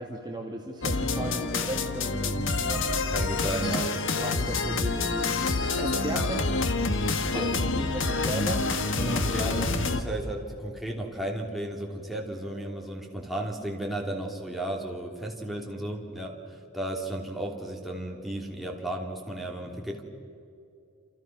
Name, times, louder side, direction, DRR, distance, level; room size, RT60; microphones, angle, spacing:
voice 1, 0.0-2.9 3.4-3.8 4.1-6.7 7.3-8.6, right 1 dB, 20° right, 0 dB, 1.9 m, -36 dB
sound 1, 0.8-10.0, left 3 dB, 60° left, 1.6 m, -27 dB
voice 2, 3.1-3.9 5.7-6.5 7.2-7.8 8.9-20.0, right 1 dB, ahead, -1 dB, 3.1 m, -34 dB
28.5 x 28.0 x 6.1 m, 2.5 s
head